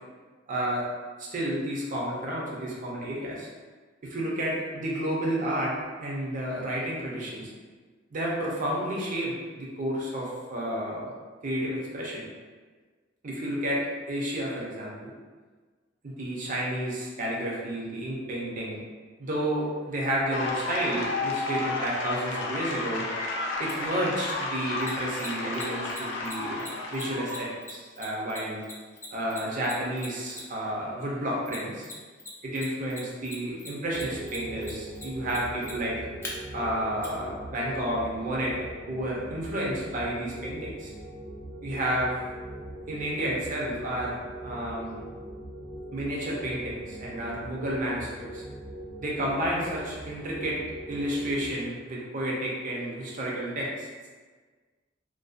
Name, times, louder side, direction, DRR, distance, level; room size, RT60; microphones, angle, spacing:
voice 1, 0.5-0.9 1.2-3.5 4.0-7.5 8.1-11.1 11.4-12.3 13.2-13.8 14.1-15.1 16.0-18.8 19.2-23.1 23.6-26.6 26.9-28.6 29.1-31.9 32.4-36.0 36.5-38.6 38.9-40.9 41.6-42.2 42.9-44.2 44.4-45.0 45.9-48.4 49.0-50.6 50.9-53.9, right 1 dB, 45° right, -4 dB, 0.5 m, -31 dB
sound 1, 20.3-27.5, left 2 dB, 75° left, 0.4 m, -32 dB
Mechanisms, 23.7-23.8 24.8-30.7 31.5-32.3 32.5-36.3 37.0-37.1, left 2 dB, 15° left, 0.4 m, -41 dB
sound 2, 33.9-51.5, right 1 dB, 85° right, 1.2 m, -41 dB
2.5 x 2.3 x 2.4 m, 1.4 s
head